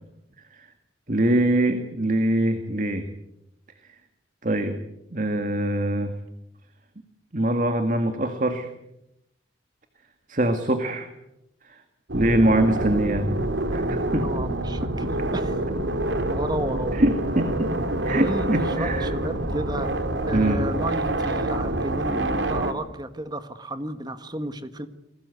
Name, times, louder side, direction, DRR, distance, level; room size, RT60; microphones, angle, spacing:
voice 1, 1.1-3.1 4.4-4.8 5.1-6.1 7.3-8.7 10.3-11.1 11.6-11.8 12.1-13.3 13.7-14.3 16.9-17.8 18.1-19.1 20.3-20.6, right 1 dB, 40° right, 7 dB, 2.0 m, -23 dB
sound 1, 12.1-22.7, right 1 dB, 70° right, 3.0 m, -26 dB
voice 2, 14.2-15.1 15.3-15.6 16.3-16.9 18.1-24.9, right 1 dB, 20° right, 10 dB, 1.7 m, -32 dB
29.5 x 20.5 x 8.3 m, 0.85 s
head